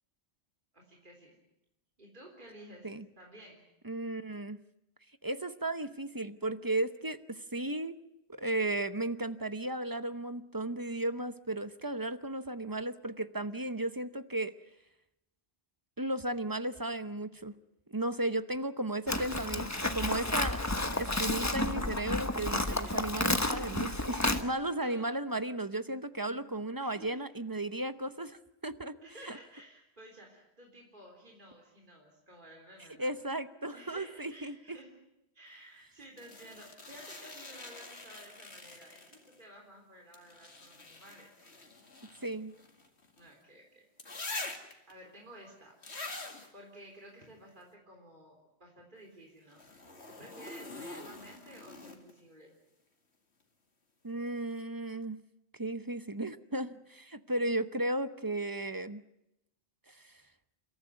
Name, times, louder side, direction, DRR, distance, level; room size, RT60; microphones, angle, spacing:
voice 1, 0.7-1.4 2.0-3.7 22.6-23.4 24.8-25.2 26.8-27.3 29.0-33.2 33.7-35.0 35.3-41.4 43.2-43.9 44.4-45.8 46.5-52.6, right 1 dB, 50° right, 0 dB, 3.9 m, -53 dB
voice 2, 3.8-4.6 5.2-8.0 8.3-14.5 16.0-17.5 17.9-20.6 20.9-28.9 29.2-29.3 33.0-34.8 42.2-42.5 54.0-55.2 55.5-59.0 59.9-60.2, right 1 dB, 20° right, 11 dB, 0.8 m, -35 dB
Livestock farm animals working animals, 19.1-24.4, left 2 dB, 15° left, 1.2 m, -31 dB
sound 1, 36.2-39.4 40.1-43.3 44.0-44.9 45.8-46.5 49.5-52.2 54.1-54.2, left 3 dB, 90° left, 2.6 m, -45 dB
29.5 x 14.0 x 9.3 m, 0.87 s
omnidirectional pair, 1.1 m